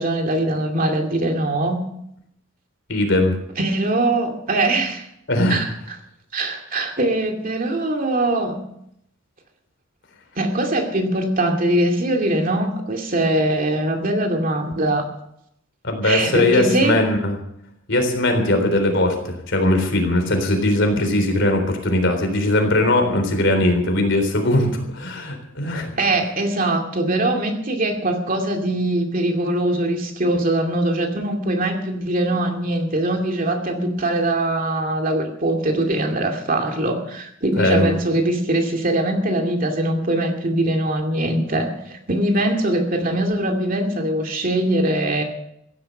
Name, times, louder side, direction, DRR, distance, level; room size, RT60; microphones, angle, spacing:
voice 1, 0.0-1.8 3.6-5.0 5.5-6.0 6.3-8.6 10.4-15.1 16.0-17.0 26.0-45.2, right 1 dB, 45° right, 3 dB, 2.5 m, -22 dB
voice 2, 2.9-3.4 5.3-5.6 15.8-17.4 17.9-25.9 37.6-37.9, left 1 dB, 65° left, 5 dB, 3.8 m, -20 dB
15.5 x 12.0 x 6.7 m, 0.76 s
head